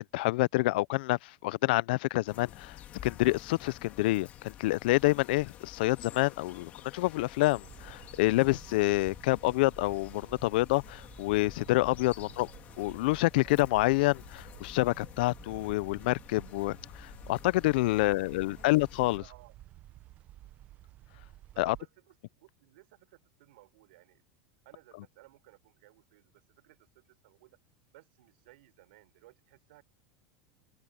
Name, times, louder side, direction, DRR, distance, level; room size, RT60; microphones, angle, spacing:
voice 1, 0.0-2.8 3.0-12.5 12.8-19.2 21.6-21.8, left 20 dB, 60° left, 0.4 m, -27 dB
sound 1, 2.3-19.2, left 11 dB, 25° left, 1.8 m, -50 dB
sound 2, 7.6-21.8, right 14 dB, 25° right, 0.6 m, -52 dB
voice 2, 17.9-18.2 18.5-18.7 19.0-19.6 21.5-24.2 24.6-27.6 27.9-29.8, right 19 dB, 65° right, 4.6 m, -59 dB
open air
supercardioid pair, 175°, 6 cm